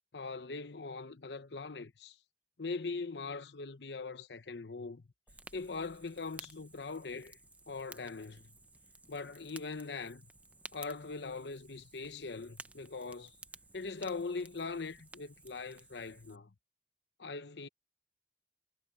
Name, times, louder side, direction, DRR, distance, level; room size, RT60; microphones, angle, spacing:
voice 1, 0.1-2.1 2.6-5.1 5.5-7.4 7.7-8.5 9.1-10.3 10.7-13.3 13.7-16.5 17.2-17.7, left 4 dB, 70° left, 0.9 m, -41 dB
Fire, 5.3-16.4, right 2 dB, 10° right, 0.6 m, -55 dB
head